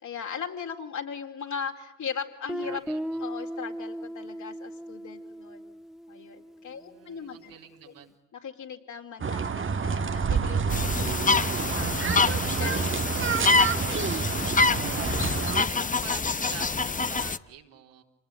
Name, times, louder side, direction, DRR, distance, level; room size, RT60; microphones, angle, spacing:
voice 1, 0.0-2.8 3.2-5.6 6.1-7.5 7.9-8.0 8.3-12.2 12.5-14.0, left 7 dB, 55° left, 3 dB, 4.3 m, -39 dB
Guitar, 2.5-7.2, equal, ahead, 1.4 m, -37 dB
voice 2, 2.6-3.2 6.7-8.1 14.8-18.0, right 9 dB, 65° right, 2 dB, 3.7 m, -46 dB
sound 1, 9.2-15.6, right 6 dB, 35° right, 1.5 m, -28 dB
sound 2, 10.7-17.4, left 4 dB, 20° left, 1.1 m, -26 dB
29.0 x 20.0 x 9.9 m, 0.82 s
hypercardioid pair, 45°, 36 cm